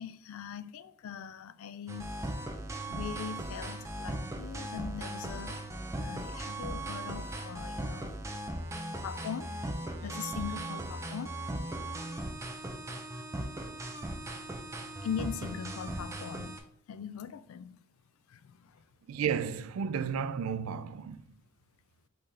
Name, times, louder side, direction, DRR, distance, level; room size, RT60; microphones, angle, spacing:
voice 1, 0.0-2.1 2.9-5.6 6.0-8.2 9.0-9.5 10.0-11.3 15.0-16.5 16.9-17.8 18.3-18.8, left 8 dB, 85° left, 0.3 m, -41 dB
sound 1, 1.9-16.6, right 1 dB, 15° right, 0.4 m, -38 dB
voice 2, 19.1-21.2, right 7 dB, 85° right, 0.3 m, -32 dB
4.0 x 3.7 x 3.2 m
head